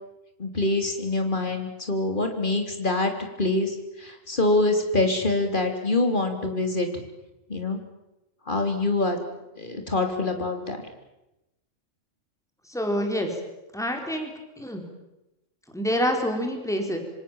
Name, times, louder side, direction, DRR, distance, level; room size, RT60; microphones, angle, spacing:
voice 1, 0.4-3.1 3.4-6.9 7.5-7.8 8.5-9.2 9.6-10.8, left 2 dB, 40° left, 4 dB, 3.8 m, -25 dB
voice 2, 12.7-13.3 13.7-14.3 14.6-14.8 15.7-17.0, equal, ahead, 3 dB, 4.1 m, -26 dB
26.0 x 26.0 x 7.4 m, 0.96 s
omnidirectional pair, 1.3 m